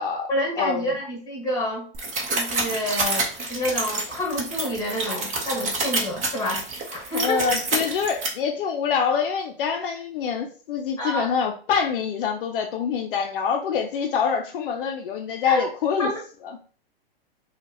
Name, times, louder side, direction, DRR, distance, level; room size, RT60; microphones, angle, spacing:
voice 1, 0.3-1.9 2.3-7.5 11.0-11.3 15.4-15.7 16.0-16.2, left 1 dB, 10° left, 0 dB, 1.7 m, -28 dB
sound 1, 1.9-8.3, right 3 dB, 25° right, 1.0 m, -27 dB
voice 2, 7.1-16.1 16.4-16.5, left 6 dB, 60° left, 4 dB, 0.6 m, -25 dB
4.4 x 2.4 x 2.9 m, 0.40 s
hypercardioid pair, 125°, 30 cm